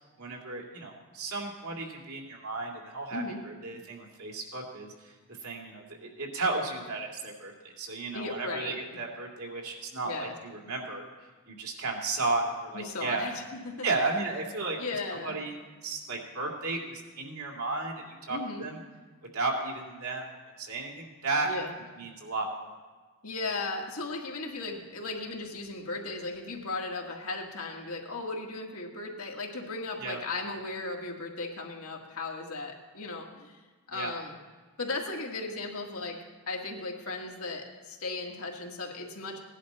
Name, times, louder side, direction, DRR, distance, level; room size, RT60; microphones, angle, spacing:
voice 1, 0.2-5.1 5.4-11.0 11.5-13.3 13.8-14.8 15.1-15.5 15.8-18.8 19.3-20.3 20.6-21.6 22.0-22.7 30.0-30.2 33.9-34.1, right 3 dB, 80° right, 0 dB, 2.6 m, -34 dB
voice 2, 3.1-3.4 8.1-8.8 10.1-10.4 12.7-13.9 14.8-15.4 18.3-18.6 21.4-21.7 23.2-33.6 33.9-34.3 34.8-39.4, left 3 dB, 80° left, 0 dB, 1.8 m, -36 dB
17.5 x 10.5 x 4.2 m, 1.4 s
head